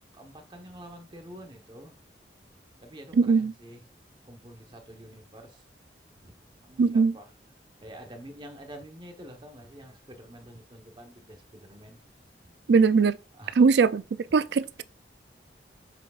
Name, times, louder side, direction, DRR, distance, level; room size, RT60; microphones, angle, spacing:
voice 1, 0.1-2.0 2.8-3.8 4.2-5.6 6.2-7.3 7.8-12.0 12.4-12.5 13.3-13.7, equal, 25° right, 1.0 m, -47 dB
voice 2, 3.2-3.5 6.8-7.1 12.7-13.2 13.6-14.0 14.3-14.8, right 5 dB, 70° right, 0.4 m, -20 dB
7.0 x 6.0 x 2.4 m
head